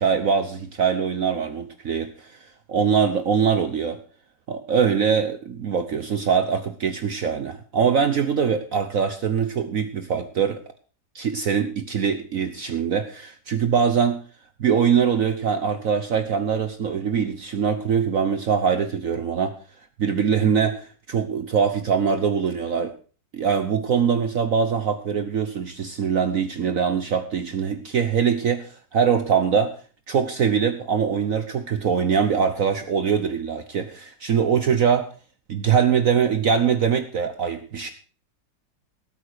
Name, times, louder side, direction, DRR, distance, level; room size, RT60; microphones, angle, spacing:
voice 1, 0.0-4.0 4.5-10.6 11.1-14.2 14.6-19.5 20.0-22.9 23.3-29.7 30.1-35.1 35.5-37.9, right 7 dB, 55° right, 9 dB, 1.2 m, -23 dB
18.0 x 8.6 x 4.8 m, 0.39 s
omnidirectional pair, 1.9 m